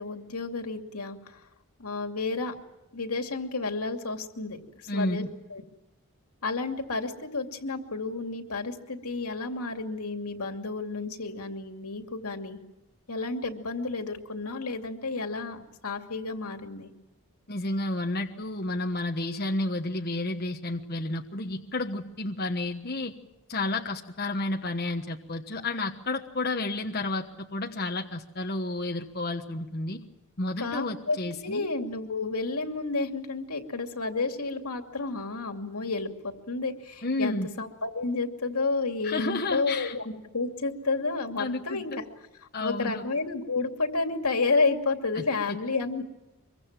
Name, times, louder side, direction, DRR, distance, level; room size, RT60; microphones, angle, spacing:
voice 1, 0.0-1.4 1.8-2.5 2.9-5.2 5.5-5.6 6.4-12.6 13.1-16.9 30.6-42.1 42.6-46.0, left 3 dB, 85° left, 4 dB, 2.7 m, -31 dB
voice 2, 4.9-5.3 17.5-23.1 23.5-30.0 30.4-31.7 37.0-37.5 39.0-39.9 41.4-41.8 42.5-43.0 45.2-45.6, left 2 dB, 45° left, 2 dB, 1.3 m, -31 dB
24.5 x 23.5 x 7.5 m, 1.0 s
head